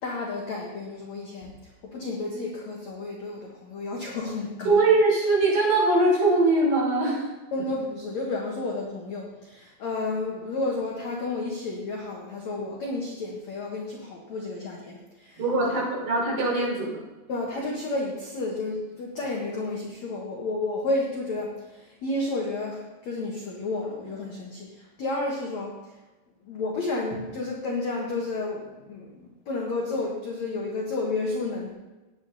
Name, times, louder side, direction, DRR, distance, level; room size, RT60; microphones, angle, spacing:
voice 1, 0.0-4.7 7.5-15.7 17.3-26.0 26.4-31.7, left 2 dB, 55° left, -2 dB, 2.1 m, -31 dB
voice 2, 4.7-7.3 15.4-17.0, right 2 dB, 80° right, -6 dB, 7.9 m, -22 dB
19.5 x 8.8 x 4.1 m, 1.1 s
omnidirectional pair, 5.1 m